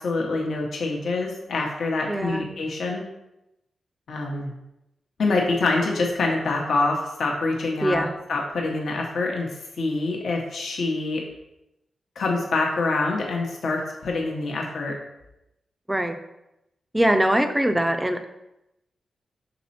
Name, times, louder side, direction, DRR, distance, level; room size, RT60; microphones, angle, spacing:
voice 1, 0.0-3.0 4.1-4.5 5.2-9.5 9.8-11.2 12.2-14.9, left 3 dB, 65° left, 0 dB, 0.9 m, -25 dB
voice 2, 2.1-2.5 7.8-8.1 15.9-16.1 16.9-18.3, right 1 dB, 5° right, 7 dB, 0.4 m, -22 dB
5.8 x 4.1 x 4.2 m, 0.89 s
wide cardioid pair, 180°, 0 cm